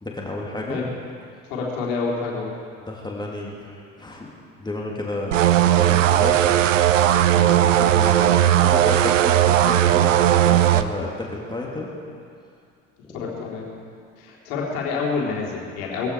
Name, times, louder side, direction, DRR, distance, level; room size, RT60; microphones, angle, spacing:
voice 1, 0.0-0.8 2.9-4.3 4.6-6.4 7.3-11.9 13.0-13.5, left 2 dB, 10° left, -2 dB, 3.0 m, -32 dB
voice 2, 1.5-2.6 13.1-13.7 14.2-16.1, left 4 dB, 60° left, -2 dB, 3.7 m, -27 dB
sound 1, 5.3-10.8, right 11 dB, 75° right, 0.6 m, -17 dB
20.0 x 15.5 x 4.8 m, 2.3 s
figure-of-eight pair, 60°, 38 cm